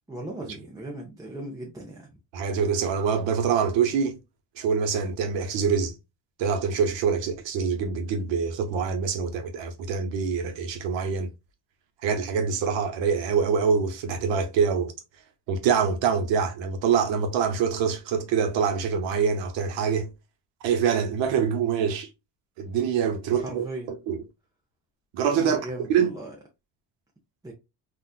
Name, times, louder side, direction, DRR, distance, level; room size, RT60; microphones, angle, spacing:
voice 1, 0.1-2.2 23.3-23.9 25.4-26.3 27.4-27.5, right 1 dB, 10° right, 0.5 m, -37 dB
voice 2, 2.3-4.2 4.6-5.9 6.4-11.3 12.0-14.9 15.5-20.1 20.6-22.1 22.6-24.2 25.1-25.6 25.9-26.1, right 6 dB, 85° right, 0.9 m, -25 dB
4.0 x 2.4 x 2.3 m
cardioid pair, 135°, 44 cm